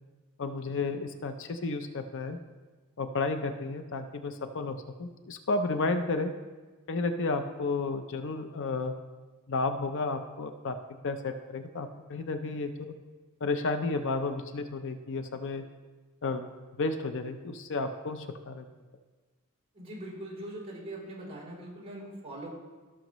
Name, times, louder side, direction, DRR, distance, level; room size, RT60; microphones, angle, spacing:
voice 1, 0.4-2.4 3.0-6.3 6.9-8.9 9.5-10.8 11.0-12.9 13.4-15.6 16.2-16.5 16.8-18.7, left 3 dB, 60° left, 7 dB, 0.6 m, -32 dB
voice 2, 19.7-22.6, right 1 dB, 30° right, -6 dB, 3.5 m, -41 dB
17.0 x 6.4 x 3.1 m, 1.3 s
head